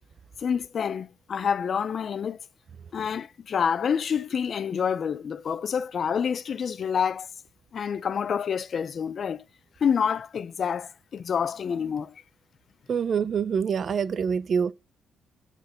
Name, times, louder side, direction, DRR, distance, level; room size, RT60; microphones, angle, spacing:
voice 1, 0.4-2.4 2.9-7.3 7.7-9.4 9.8-12.2, left 7 dB, 50° left, 0.5 m, -28 dB
voice 2, 12.9-14.7, right 6 dB, 50° right, 0.7 m, -25 dB
10.5 x 4.3 x 5.7 m
cardioid pair, 90°, 0 cm